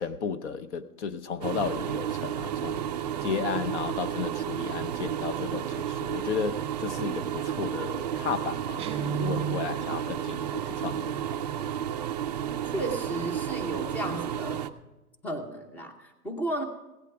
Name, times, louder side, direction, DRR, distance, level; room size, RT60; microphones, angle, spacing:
voice 1, 0.0-2.8 3.2-11.4, left 6 dB, 50° left, 0.8 m, -34 dB
sound 1, 1.4-14.7, right 10 dB, 30° right, 0.4 m, -32 dB
Guitar, 8.8-9.9, right 7 dB, 15° right, 2.9 m, -32 dB
voice 2, 12.7-14.7 15.2-16.6, right 1 dB, 5° left, 0.7 m, -33 dB
17.0 x 8.3 x 6.0 m
hypercardioid pair, 140°, 46 cm